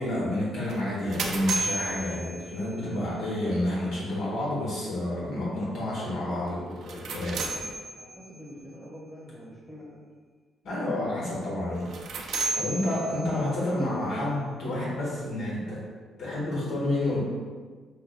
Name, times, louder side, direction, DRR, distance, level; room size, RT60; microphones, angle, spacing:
voice 1, 0.0-7.4 10.6-11.9 12.5-15.8 16.2-17.2, left 1 dB, 80° left, -6 dB, 1.4 m, -29 dB
sound 1, 0.7-2.9 6.7-8.4 11.7-13.5, right 3 dB, 70° right, 0.4 m, -33 dB
voice 2, 7.2-10.0, equal, 10° left, -5 dB, 1.1 m, -46 dB
5.6 x 2.3 x 2.2 m, 1.5 s
cardioid pair, 90°, 0 cm